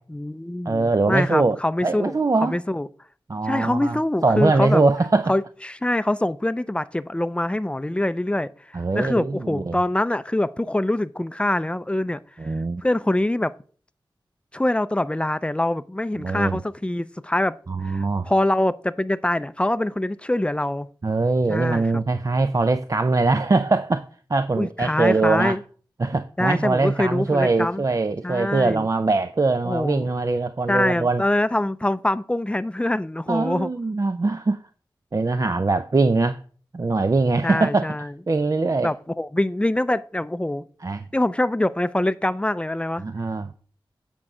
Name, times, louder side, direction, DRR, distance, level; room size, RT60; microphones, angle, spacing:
voice 1, 0.1-2.2 2.4-2.9 3.4-4.8 5.3-8.5 8.9-12.5 12.8-13.5 14.5-17.6 17.8-20.9 21.5-22.0 24.6-25.6 26.4-27.8 28.2-28.9 29.6-30.1 30.7-33.7 37.4-38.1 38.8-40.6 41.1-43.0, left 1 dB, 15° left, 0.5 m, -24 dB
voice 2, 0.7-1.6 1.8-2.6 3.3-5.3 8.7-9.8 12.4-12.8 16.1-16.6 17.7-18.3 21.0-25.6 26.0-31.2 33.3-34.7 35.1-36.4 36.7-37.9 38.3-38.9 40.8-41.0 43.0-43.5, right 3 dB, 40° right, 0.5 m, -22 dB
8.5 x 5.4 x 4.9 m
cardioid pair, 50°, 9 cm